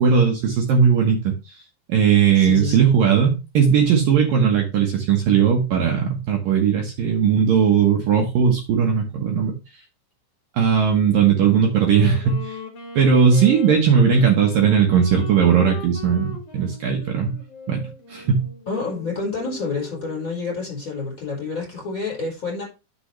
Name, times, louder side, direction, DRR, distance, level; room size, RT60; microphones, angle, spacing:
voice 1, 0.0-1.3 1.9-9.5 10.5-12.5 13.0-17.4 17.7-18.4, right 7 dB, 75° right, 2.0 m, -18 dB
voice 2, 2.3-3.0 18.7-22.6, left 4 dB, 15° left, 4.8 m, -28 dB
Wind instrument woodwind instrument, 11.6-20.3, left 4 dB, 45° left, 2.0 m, -39 dB
10.5 x 6.8 x 3.2 m
omnidirectional pair, 6.0 m